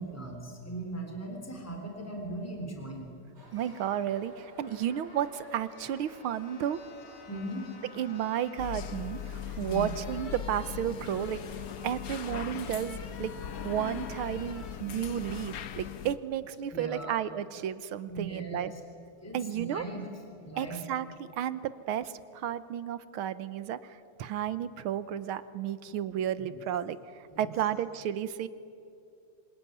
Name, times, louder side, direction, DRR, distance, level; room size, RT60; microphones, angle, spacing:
voice 1, 0.0-3.1 7.3-7.7 9.6-9.9 16.7-17.2 18.1-18.7 19.2-20.0 20.4-20.8 27.3-27.5, right 2 dB, 5° left, 3 dB, 3.6 m, -38 dB
sound 1, 3.4-14.7, right 1 dB, 30° right, 5.3 m, -53 dB
voice 2, 3.5-6.8 8.0-11.4 11.8-13.3 13.6-18.7 19.3-19.8 20.6-21.1 21.4-28.5, right 10 dB, 75° right, 14 dB, 1.7 m, -33 dB
sound 2, 5.2-5.3 5.7-16.0 16.5-16.7, left 7 dB, 80° left, 2.5 m, -52 dB
sound 3, 8.6-16.2, left 9 dB, 60° left, 1.0 m, -39 dB
26.5 x 21.0 x 9.6 m, 2.6 s
omnidirectional pair, 2.4 m